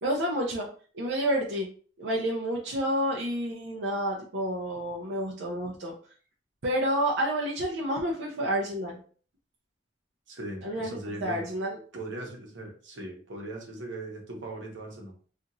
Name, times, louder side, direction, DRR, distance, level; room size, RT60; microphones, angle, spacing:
voice 1, 0.0-0.7 0.9-1.7 2.0-6.1 6.6-9.0 10.6-11.8, equal, 70° right, -2 dB, 0.5 m, -29 dB
voice 2, 10.3-11.5 11.9-15.1, right 2 dB, 90° right, 1 dB, 0.9 m, -39 dB
2.9 x 2.4 x 2.5 m, 0.43 s
head